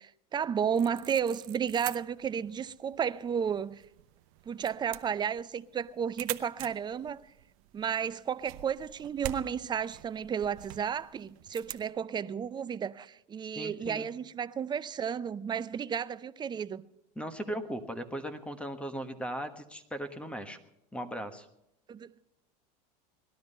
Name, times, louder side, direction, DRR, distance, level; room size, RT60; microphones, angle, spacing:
voice 1, 0.0-3.8 4.5-7.2 7.7-16.8 21.9-22.1, right 7 dB, 20° right, 0.5 m, -33 dB
sound 1, 0.8-11.9, right 16 dB, 65° right, 0.9 m, -46 dB
voice 2, 13.5-14.1 17.1-20.6 20.9-21.5, equal, 5° left, 1.4 m, -38 dB
18.5 x 12.0 x 5.5 m
supercardioid pair, 105°, 20 cm